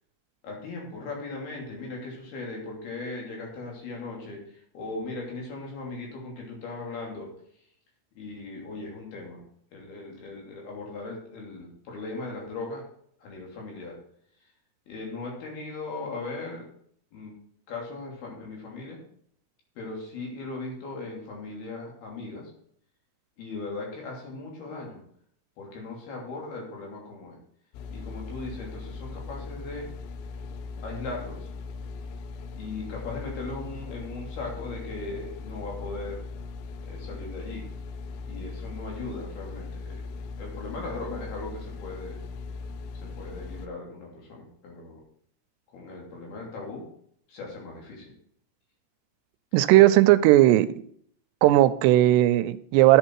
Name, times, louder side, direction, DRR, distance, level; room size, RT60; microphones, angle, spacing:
voice 1, 0.4-4.4 4.7-7.3 8.2-9.4 9.7-12.9 13.2-14.0 14.9-16.7 17.1-17.4 17.7-19.0 19.8-22.5 23.4-25.0 25.6-27.4 27.9-29.9 30.8-31.5 32.5-36.3 36.8-37.7 38.3-40.0 40.4-42.2 42.9-45.0 45.7-46.9 47.3-48.1, left 3 dB, 65° left, 4.9 m, -38 dB
sound 1, 27.7-43.7, left 4 dB, 85° left, 3.0 m, -39 dB
voice 2, 49.5-50.7 51.4-53.0, right 15 dB, 85° right, 2.7 m, -17 dB
11.0 x 8.8 x 4.7 m
omnidirectional pair, 4.8 m